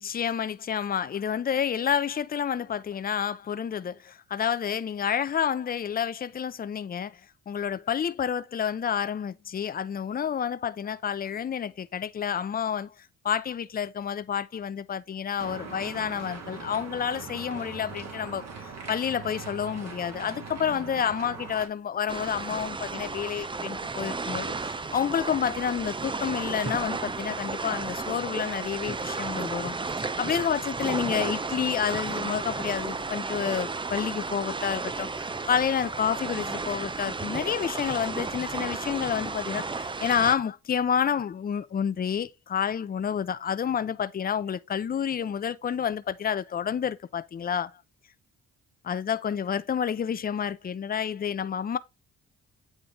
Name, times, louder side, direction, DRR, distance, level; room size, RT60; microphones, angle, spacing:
voice 1, 0.0-7.2 7.5-47.7 48.8-51.8, left 8 dB, 30° left, 0.6 m, -29 dB
sound 1, 15.4-21.7, right 5 dB, 60° right, 2.4 m, -41 dB
sound 2, 22.1-40.3, right 4 dB, 15° right, 0.5 m, -33 dB
8.7 x 3.9 x 3.8 m
cardioid pair, 90°, 30 cm